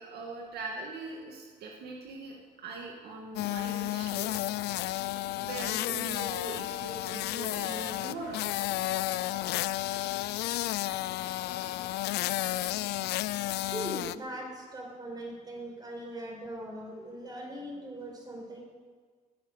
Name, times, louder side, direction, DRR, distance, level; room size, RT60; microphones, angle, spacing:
voice 1, 0.0-4.4 5.4-8.4, right 3 dB, 70° right, 0 dB, 2.2 m, -41 dB
sound 1, 3.4-14.2, left 16 dB, 80° left, 0.5 m, -32 dB
voice 2, 13.7-18.6, right 1 dB, 25° right, 1 dB, 5.1 m, -40 dB
19.5 x 10.0 x 6.6 m, 1.5 s
cardioid pair, 110°, 17 cm